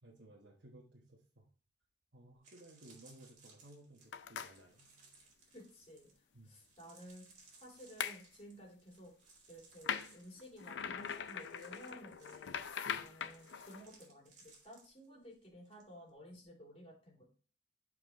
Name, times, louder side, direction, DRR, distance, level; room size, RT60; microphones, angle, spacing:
voice 1, 0.0-1.5 2.1-4.9 6.3-6.6 12.8-13.0, right 1 dB, 75° right, -2 dB, 1.2 m, -58 dB
sound 1, 1.8-1.9 2.3-15.8 16.1-16.4, right 4 dB, 40° right, 2.2 m, -64 dB
sound 2, 4.1-4.5 8.0-8.2 9.8-13.8, left 7 dB, 85° left, 0.5 m, -41 dB
voice 2, 5.5-6.1 6.5-7.2 7.6-9.1 9.5-12.6 12.9-14.3 14.6-17.2, equal, 30° left, -3 dB, 3.0 m, -54 dB
7.4 x 4.8 x 3.6 m, 0.40 s
head